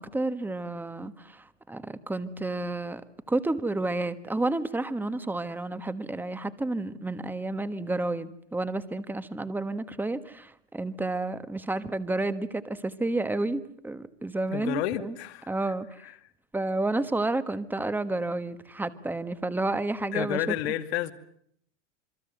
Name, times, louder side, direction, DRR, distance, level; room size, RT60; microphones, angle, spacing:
voice 1, 0.0-3.0 3.3-15.2 15.5-16.0 16.5-20.5, right 2 dB, 5° right, 12 dB, 1.4 m, -30 dB
voice 2, 14.5-15.5 16.0-16.1 20.1-21.1, left 13 dB, 60° left, 10 dB, 2.5 m, -30 dB
28.0 x 22.5 x 7.9 m, 0.71 s
supercardioid pair, 135°, 35 cm